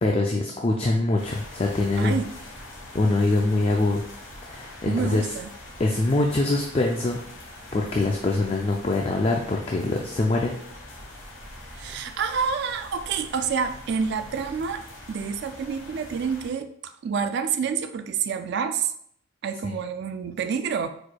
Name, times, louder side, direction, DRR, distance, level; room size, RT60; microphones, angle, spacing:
voice 1, 0.0-2.2 2.9-4.0 4.5-5.2 5.8-7.2 7.7-10.6, left 2 dB, 30° left, 0 dB, 0.4 m, -23 dB
sound 1, 1.2-16.5, left 1 dB, 70° left, 1.4 m, -43 dB
voice 2, 2.0-2.3 4.9-5.5 11.7-14.8 15.1-18.9 19.4-20.9, right 6 dB, 55° right, 8 dB, 0.3 m, -28 dB
4.7 x 4.2 x 2.3 m, 0.66 s
head